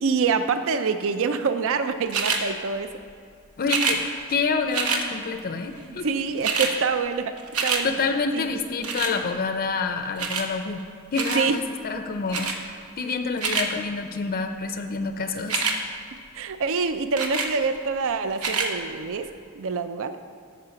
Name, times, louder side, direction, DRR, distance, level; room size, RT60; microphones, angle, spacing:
voice 1, 0.0-2.9 5.9-7.3 7.6-7.9 8.3-8.5 11.3-11.6 16.3-19.3 19.6-20.1, right 5 dB, 65° right, 10 dB, 0.5 m, -26 dB
sound 1, 2.1-2.4 3.6-4.0 4.7-5.0 6.0-6.1 6.3-6.7 7.1-7.8 8.8-9.1 10.2-10.5 11.1-11.4 12.3-12.6 13.2-13.7 15.4-15.8 17.2-17.5 18.3-18.7 19.4-19.5, right 5 dB, 85° right, 1.0 m, -25 dB
voice 2, 3.6-4.0 4.3-6.1 7.8-10.8 11.1-12.5 13.0-15.6, left 4 dB, 40° left, 7 dB, 0.5 m, -27 dB
13.5 x 4.9 x 5.8 m, 2.4 s
head